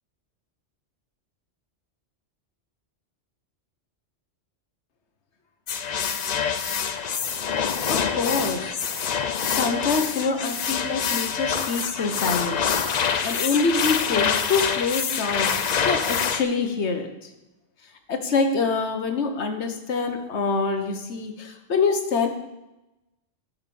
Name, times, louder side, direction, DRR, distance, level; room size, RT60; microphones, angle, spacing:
sound 1, 5.7-16.4, left 7 dB, 45° left, 0.6 m, -26 dB
voice 1, 7.9-8.8 9.5-12.7 13.2-15.5 15.8-17.1 18.1-22.3, left 4 dB, 70° left, 6 dB, 1.4 m, -25 dB
12.0 x 5.6 x 7.0 m, 0.97 s
omnidirectional pair, 1.2 m